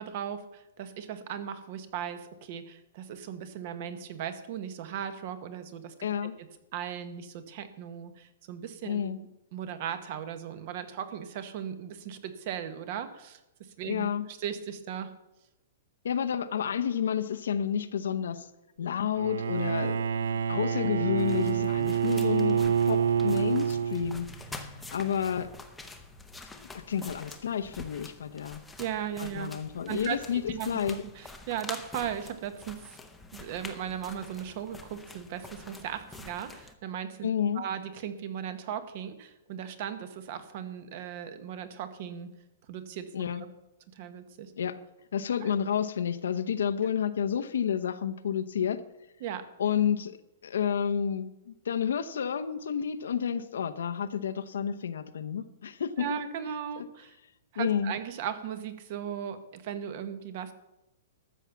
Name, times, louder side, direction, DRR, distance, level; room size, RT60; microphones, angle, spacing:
voice 1, 0.0-5.9 6.4-6.5 6.7-9.1 9.5-13.4 13.8-15.1 28.8-29.5 29.9-30.2 30.5-32.9 33.3-37.3 37.5-42.3 42.7-43.1 44.0-44.5 45.4-45.5 49.2-49.4 56.0-57.1 57.5-60.5, right 9 dB, 35° right, 11 dB, 1.0 m, -37 dB
voice 2, 6.0-6.4 8.8-9.2 13.8-14.3 16.0-18.5 18.8-24.3 24.9-25.5 26.7-28.6 29.2-31.0 37.2-37.6 43.1-43.5 44.6-44.8 45.1-48.8 49.6-50.2 50.4-56.1 56.8-56.9 57.6-57.9, left 8 dB, 85° left, 11 dB, 0.9 m, -30 dB
Bowed string instrument, 19.1-24.4, right 8 dB, 70° right, 0.4 m, -27 dB
sound 1, 21.2-36.7, left 3 dB, 5° left, 0.7 m, -46 dB
13.0 x 7.1 x 7.1 m, 0.94 s
hypercardioid pair, 175°, 0 cm